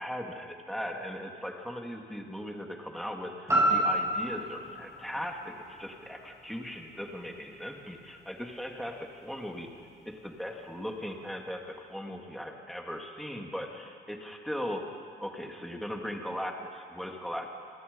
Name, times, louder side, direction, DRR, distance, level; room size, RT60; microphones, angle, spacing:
voice 1, 0.0-17.5, equal, ahead, 1 dB, 2.8 m, -38 dB
sound 1, 3.5-7.6 8.0-8.1, right 1 dB, 15° right, 7.5 m, -30 dB
27.5 x 20.0 x 5.6 m, 2.2 s
cardioid pair, 90°, 20 cm